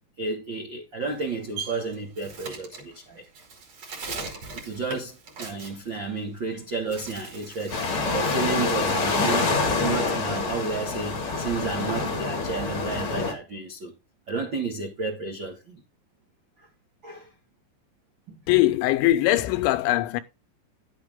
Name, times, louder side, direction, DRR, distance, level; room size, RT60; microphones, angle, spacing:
voice 1, 0.2-3.2 4.5-13.9 14.3-15.8 16.6-16.7 17.0-17.3 18.3-18.4, right 4 dB, 75° right, 1.0 m, -32 dB
Bird, 1.0-6.5 6.8-8.1 8.4-10.2, right 4 dB, 40° right, 2.8 m, -40 dB
sound 1, 7.7-13.3, left 4 dB, 55° left, 1.4 m, -26 dB
voice 2, 18.5-20.2, left 15 dB, 80° left, 3.1 m, -21 dB
10.5 x 8.3 x 3.6 m
omnidirectional pair, 5.3 m